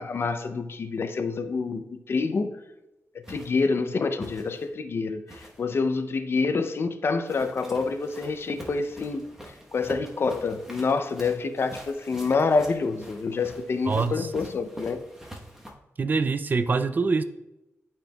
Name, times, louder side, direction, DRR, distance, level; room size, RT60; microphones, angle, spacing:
voice 1, 0.0-2.5 3.3-9.3 9.7-15.0, left 4 dB, 50° left, 0.5 m, -27 dB
sound 1, 3.2-3.6 4.2-4.7 5.3-5.7 7.2-15.7, equal, 10° right, 1.1 m, -44 dB
voice 2, 13.9-14.3 16.0-17.2, right 4 dB, 35° right, 0.4 m, -24 dB
12.0 x 4.4 x 2.3 m
wide cardioid pair, 120°, 5 cm